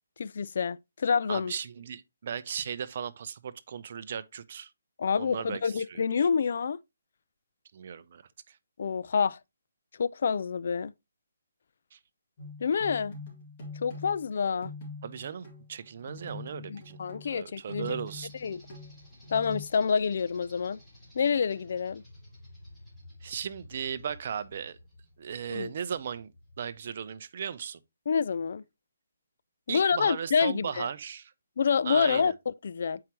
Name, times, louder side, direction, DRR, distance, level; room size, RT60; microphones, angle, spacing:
voice 1, 0.2-1.5 5.0-6.8 8.8-9.4 10.0-10.9 12.6-13.2 13.8-14.7 16.7-18.0 18.4-18.6 19.3-20.8 21.2-22.0 25.5-25.7 28.1-28.6 29.7-30.9 31.6-33.0, left 6 dB, 55° left, 0.3 m, -27 dB
voice 2, 1.3-4.7 5.2-6.0 7.7-8.6 11.9-12.0 15.0-17.0 17.3-18.3 23.2-24.8 25.2-26.3 26.6-27.8 29.7-31.3 31.8-32.3, right 7 dB, 45° right, 0.5 m, -36 dB
sound 1, 12.4-14.3 14.6-19.6, left 2 dB, 35° left, 2.6 m, -43 dB
sound 2, 18.0-26.8, left 1 dB, 5° left, 2.3 m, -53 dB
7.4 x 4.7 x 2.9 m
hypercardioid pair, 160°, 0 cm